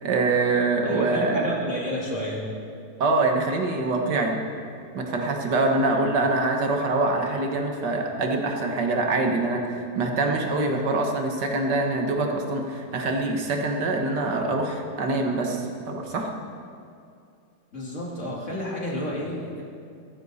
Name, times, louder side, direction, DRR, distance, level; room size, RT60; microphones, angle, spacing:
voice 1, 0.0-1.5 3.0-4.4 4.9-16.3, right 3 dB, 75° right, 2 dB, 1.9 m, -24 dB
voice 2, 0.8-2.5 5.8-6.2 17.7-19.6, left 1 dB, 45° left, -3 dB, 2.5 m, -31 dB
14.5 x 14.0 x 4.1 m, 2.4 s
omnidirectional pair, 1.8 m